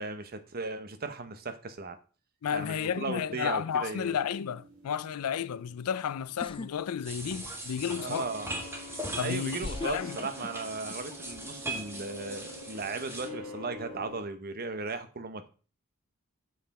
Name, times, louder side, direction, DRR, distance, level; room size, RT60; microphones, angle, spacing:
voice 1, 0.0-2.0 2.5-4.2 7.9-8.5 9.2-15.5, right 3 dB, 45° right, 0.9 m, -37 dB
voice 2, 2.4-8.3 9.2-10.2, left 8 dB, 90° left, 0.4 m, -32 dB
sound 1, 4.1-14.2, left 1 dB, 80° right, 2.8 m, -47 dB
sound 2, 6.4-6.7 7.1-7.7 8.7-8.8 9.6-11.0 11.3-11.7, left 3 dB, 25° left, 0.3 m, -39 dB
sound 3, 7.0-13.3, right 1 dB, 10° right, 1.3 m, -40 dB
7.6 x 5.7 x 4.2 m
head